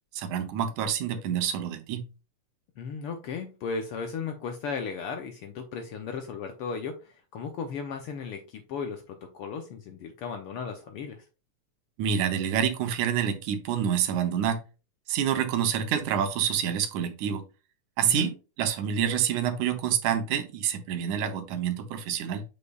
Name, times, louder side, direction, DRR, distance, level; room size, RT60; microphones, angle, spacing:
voice 1, 0.1-2.1 12.0-14.6 15.1-17.4 18.0-18.3 18.6-22.4, right 8 dB, 80° right, 6 dB, 2.3 m, -27 dB
voice 2, 2.8-11.2 18.0-18.3, left 5 dB, 90° left, 5 dB, 1.2 m, -36 dB
8.1 x 5.3 x 2.3 m, 0.32 s
omnidirectional pair, 3.5 m